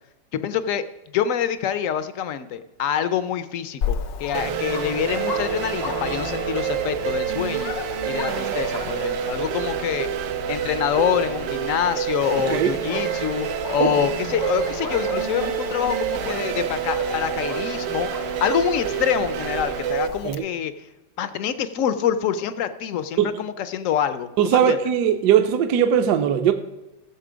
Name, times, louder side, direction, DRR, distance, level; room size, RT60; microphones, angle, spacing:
voice 1, 0.3-0.8 1.1-7.8 8.0-10.1 10.5-18.1 18.4-20.7 21.2-24.8, left 9 dB, 65° left, 0.8 m, -26 dB
Dog, 3.8-20.3, left 7 dB, 85° left, 1.5 m, -35 dB
sound 1, 4.3-20.1, right 9 dB, 85° right, 1.4 m, -28 dB
voice 2, 24.4-26.5, right 9 dB, 70° right, 1.2 m, -19 dB
15.5 x 7.4 x 5.0 m
omnidirectional pair, 2.0 m